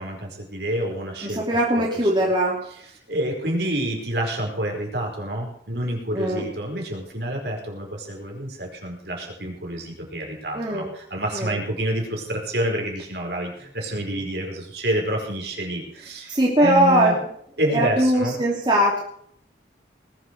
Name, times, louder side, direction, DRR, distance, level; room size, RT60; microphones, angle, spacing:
voice 1, 0.0-1.4 1.7-1.8 3.1-17.1 17.6-18.3, right 1 dB, 65° right, 0 dB, 4.9 m, -28 dB
voice 2, 1.2-2.6 6.1-6.4 10.5-10.9 11.3-11.6 16.3-17.1 17.7-19.0, right 1 dB, 25° right, -3 dB, 3.0 m, -20 dB
20.0 x 8.2 x 6.6 m, 0.65 s
head